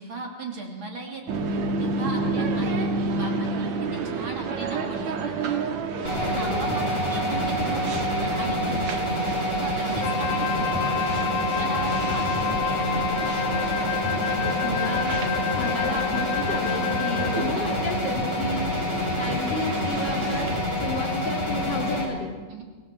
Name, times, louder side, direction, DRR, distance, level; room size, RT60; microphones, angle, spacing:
voice 1, 0.0-1.4 1.8-5.6 6.0-13.2 17.4-17.7 22.5-22.6, right 3 dB, 45° right, 1 dB, 3.3 m, -38 dB
sound 1, 1.3-20.6, right 4 dB, 70° right, 2.8 m, -31 dB
sound 2, 6.1-22.1, left 1 dB, 65° left, 6.4 m, -27 dB
voice 2, 6.3-6.7 14.1-15.2 15.5-18.7 19.1-20.5 20.8-22.4, left 2 dB, 35° left, 0 dB, 3.2 m, -32 dB
Wind instrument woodwind instrument, 10.0-17.6, left 11 dB, 80° left, 2.3 m, -30 dB
26.5 x 20.0 x 7.5 m, 1.4 s
omnidirectional pair, 3.4 m